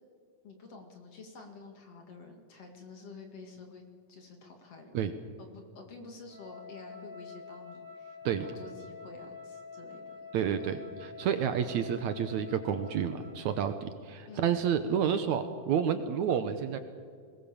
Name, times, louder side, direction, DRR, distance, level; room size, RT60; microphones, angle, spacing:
voice 1, 0.4-3.8 4.1-5.0 5.4-10.2 10.6-10.7 14.3-14.6 15.1-15.3, left 3 dB, 50° left, 4 dB, 3.0 m, -49 dB
Wind instrument woodwind instrument, 6.3-13.9, left 5 dB, 20° right, 4.3 m, -48 dB
voice 2, 10.3-16.8, right 8 dB, 70° right, 10 dB, 2.0 m, -30 dB
21.5 x 20.0 x 7.2 m, 2.1 s
omnidirectional pair, 3.8 m